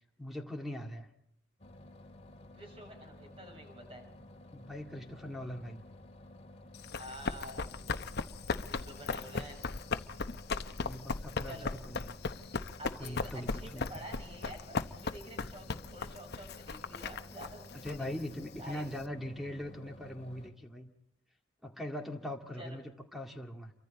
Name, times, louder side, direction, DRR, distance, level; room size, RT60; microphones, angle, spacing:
voice 1, 0.2-1.1 4.5-5.8 10.8-12.2 13.0-13.9 17.7-20.9 21.6-23.7, left 1 dB, ahead, 2 dB, 2.1 m, -41 dB
sound 1, 1.6-20.5, left 1 dB, 35° left, 2.1 m, -53 dB
voice 2, 2.5-4.1 7.0-8.0 8.7-9.7 11.4-11.7 12.8-18.2 18.6-18.9 22.6-22.8, right 1 dB, 30° right, 3 dB, 6.6 m, -49 dB
Run, 6.7-19.0, left 4 dB, 55° left, 0.9 m, -38 dB
29.0 x 24.5 x 4.2 m, 0.75 s
head